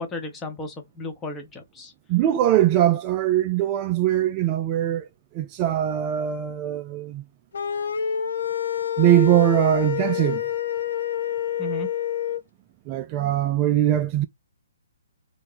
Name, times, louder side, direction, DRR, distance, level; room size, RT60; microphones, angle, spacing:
voice 1, 0.0-1.9 11.6-11.9, left 1 dB, 15° left, 0.8 m, -34 dB
voice 2, 2.1-5.1 5.3-7.2 9.0-10.4 12.9-14.3, right 12 dB, 30° right, 0.3 m, -21 dB
sound 1, 7.5-12.4, left 9 dB, 65° left, 0.6 m, -27 dB
2.8 x 2.1 x 3.9 m
hypercardioid pair, 145°, 0 cm